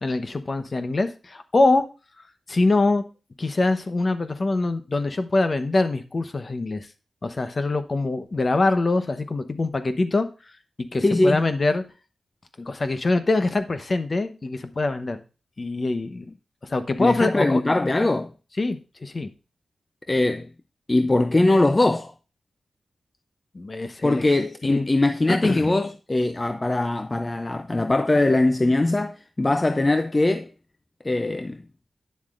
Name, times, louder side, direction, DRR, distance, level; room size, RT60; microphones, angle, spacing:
voice 1, 0.0-1.9 2.5-3.0 3.4-6.9 7.2-10.3 10.8-11.8 12.6-15.2 15.6-16.3 16.6-17.6 18.6-19.3 23.5-24.2 24.7-24.9 25.3-25.6, left 2 dB, 40° left, 0.9 m, -24 dB
voice 2, 11.0-11.4 17.0-18.3 20.1-20.5 20.9-22.1 24.0-30.5 31.0-31.6, left 2 dB, 25° left, 0.5 m, -21 dB
9.6 x 7.3 x 2.5 m
wide cardioid pair, 80°, 0 cm